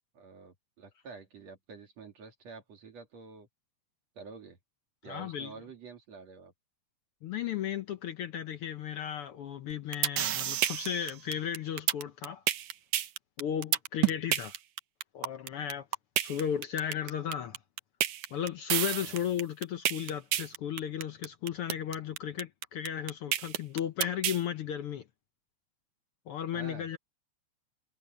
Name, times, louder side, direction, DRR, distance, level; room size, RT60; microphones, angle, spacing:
voice 1, 0.1-3.5 4.2-4.6 5.0-6.5 14.0-14.2 19.0-19.3 26.5-26.9, right 4 dB, 65° right, 3.6 m, -48 dB
voice 2, 5.1-5.5 7.2-12.4 13.4-14.6 15.1-15.9 16.2-17.6 18.3-25.0 26.3-27.0, left 9 dB, 70° left, 1.4 m, -35 dB
sound 1, 9.7-24.4, right 12 dB, 90° right, 2.6 m, -30 dB
omnidirectional pair, 3.3 m